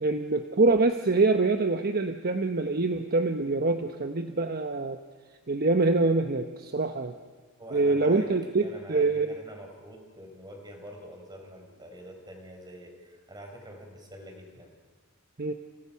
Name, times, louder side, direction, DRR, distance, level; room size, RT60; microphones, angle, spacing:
voice 1, 0.0-5.0 5.5-7.1 7.7-9.4 15.4-15.5, right 3 dB, 45° right, 7 dB, 1.1 m, -25 dB
voice 2, 7.6-8.3 8.6-14.7, equal, 20° right, 3 dB, 4.7 m, -45 dB
29.0 x 29.0 x 5.8 m, 1.4 s
head